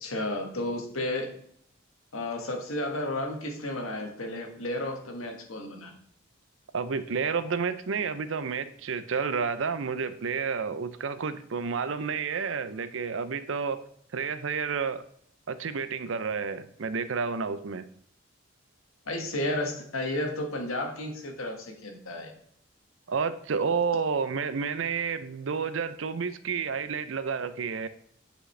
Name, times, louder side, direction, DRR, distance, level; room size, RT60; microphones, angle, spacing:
voice 1, 0.0-1.3 2.1-5.9 19.1-22.3, left 1 dB, 85° left, 3 dB, 1.5 m, -32 dB
voice 2, 6.7-13.8 14.1-15.0 15.5-17.8 23.1-27.9, right 5 dB, 70° right, 13 dB, 0.5 m, -30 dB
8.9 x 5.0 x 3.3 m, 0.65 s
head